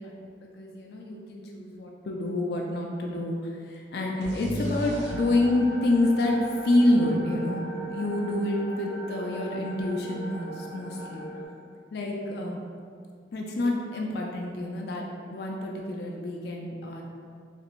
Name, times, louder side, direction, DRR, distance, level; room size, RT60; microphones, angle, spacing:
voice 1, 0.0-7.6 7.9-11.3 11.9-12.6 13.3-17.0, left 1 dB, 60° left, -1 dB, 0.4 m, -28 dB
sound 1, 4.2-7.9, equal, 85° right, 0.9 m, -39 dB
sound 2, 4.9-11.5, right 2 dB, 15° right, 0.6 m, -39 dB
3.3 x 2.5 x 3.0 m, 2.2 s
head